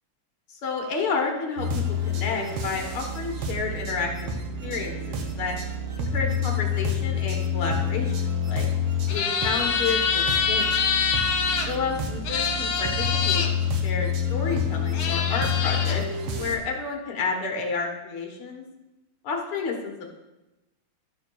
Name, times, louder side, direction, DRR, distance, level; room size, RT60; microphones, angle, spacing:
voice 1, 0.5-4.3 4.6-5.6 6.0-8.7 9.1-10.7 11.6-16.0 16.4-18.7 19.2-19.9, left 4 dB, 55° left, 1 dB, 2.1 m, -30 dB
sound 1, 1.6-16.6, left 5 dB, 65° right, 1.4 m, -28 dB
sound 2, 9.1-11.7 12.2-13.5 14.5-14.6 14.9-16.0, left 6 dB, 75° left, 2.3 m, -25 dB
12.5 x 4.3 x 6.2 m, 1.0 s
omnidirectional pair, 3.4 m